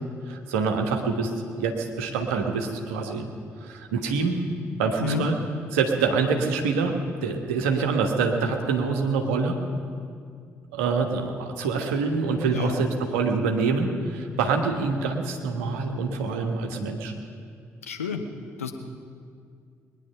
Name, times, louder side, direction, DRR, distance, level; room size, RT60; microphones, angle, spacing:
voice 1, 0.3-1.3 1.6-3.3 3.6-4.4 4.8-5.4 5.7-9.6 10.7-17.1, right 4 dB, 75° right, 4 dB, 1.2 m, -25 dB
voice 2, 17.8-18.3 18.6-18.7, left 6 dB, 85° left, 5 dB, 0.8 m, -29 dB
21.0 x 10.0 x 5.6 m, 2.2 s
figure-of-eight pair, 40°, 7 cm